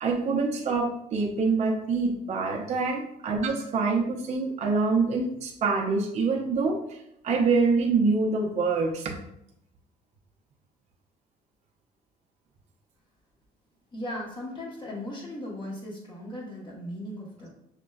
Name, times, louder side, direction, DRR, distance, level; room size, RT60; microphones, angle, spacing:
voice 1, 0.0-9.1, right 4 dB, 40° right, 0 dB, 0.6 m, -25 dB
voice 2, 13.9-17.5, left 1 dB, 25° left, -3 dB, 1.0 m, -37 dB
6.0 x 2.2 x 2.3 m, 0.77 s
cardioid pair, 110°, 17 cm